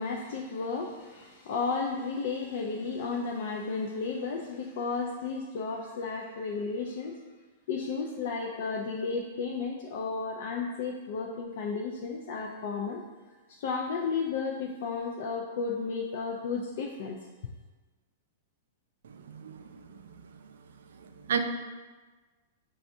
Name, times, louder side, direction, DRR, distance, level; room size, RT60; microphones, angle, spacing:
voice 1, 0.0-7.2 7.7-13.0 13.6-17.2, left 4 dB, 55° left, 0 dB, 0.4 m, -33 dB
voice 2, 19.3-20.1 21.3-21.4, right 7 dB, 85° right, 7 dB, 0.4 m, -33 dB
5.9 x 2.3 x 2.6 m, 1.3 s
supercardioid pair, 160°, 0 cm